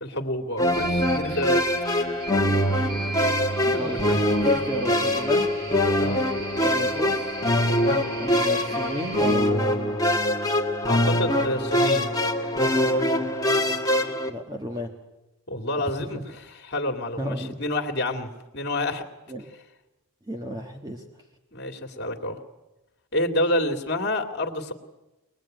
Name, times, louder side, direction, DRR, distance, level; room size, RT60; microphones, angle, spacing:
voice 1, 0.0-1.6 3.7-3.8 6.0-6.2 7.8-8.0 10.8-12.1 15.5-19.1 21.5-22.4 23.1-24.7, left 1 dB, 50° left, 4 dB, 2.3 m, -28 dB
sound 1, 0.6-14.3, left 1 dB, 15° left, 1.8 m, -23 dB
sound 2, 0.7-9.4, right 2 dB, 50° right, 6.1 m, -38 dB
voice 2, 3.0-3.4 3.6-4.0 4.4-5.5 6.6-7.3 8.2-10.0 14.3-14.9 17.2-17.6 19.3-19.5 20.3-21.0, equal, 20° right, 2 dB, 1.5 m, -33 dB
24.0 x 20.0 x 9.2 m, 1.0 s
head